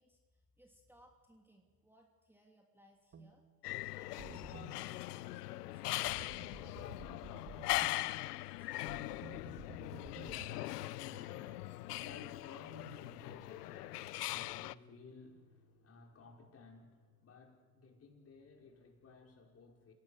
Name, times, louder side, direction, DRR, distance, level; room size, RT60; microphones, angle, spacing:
voice 1, 0.0-3.4 3.9-8.9, right 1 dB, 5° right, 1 dB, 3.0 m, -66 dB
sound 1, 3.1-3.3 4.2-4.7 6.1-7.9 8.9-10.5, right 5 dB, 30° right, 2.4 m, -52 dB
sound 2, 3.6-14.7, left 17 dB, 80° left, 0.7 m, -40 dB
voice 2, 8.2-19.9, left 4 dB, 30° left, 2 dB, 5.2 m, -57 dB
28.5 x 17.5 x 6.6 m, 1.4 s
hypercardioid pair, 90°, 47 cm